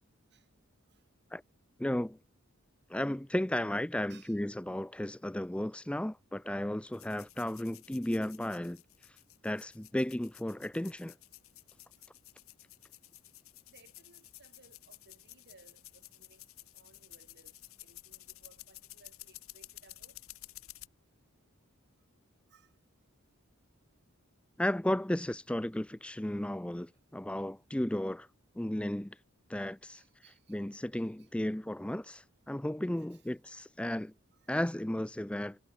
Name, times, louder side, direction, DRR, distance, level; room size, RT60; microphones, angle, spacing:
voice 1, 1.8-2.2 2.9-8.8 9.4-11.1 24.6-28.3 28.5-29.2 29.5-30.0 30.5-34.1 34.5-35.6, left 1 dB, 5° left, 0.4 m, -34 dB
voice 2, 4.1-4.4 13.7-16.5 16.7-20.2 22.5-22.7 29.9-31.5 33.0-33.3 34.3-34.5, right 4 dB, 55° right, 7.5 m, -63 dB
sound 1, 6.9-20.9, left 17 dB, 75° left, 1.3 m, -53 dB
head